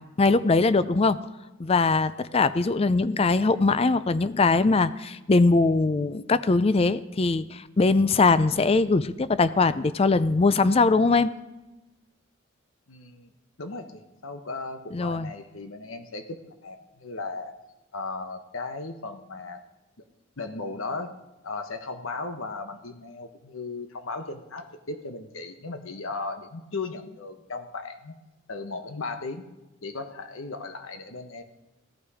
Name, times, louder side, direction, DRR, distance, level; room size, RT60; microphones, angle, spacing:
voice 1, 0.2-1.2 1.6-11.3 14.9-15.3, left 3 dB, 30° left, 15 dB, 0.4 m, -21 dB
voice 2, 12.9-13.3 13.6-17.5 17.9-19.6 20.4-21.1 21.4-28.1 28.5-29.4 29.8-31.4, left 3 dB, 85° left, 7 dB, 1.2 m, -36 dB
16.5 x 11.5 x 4.9 m, 1.1 s
head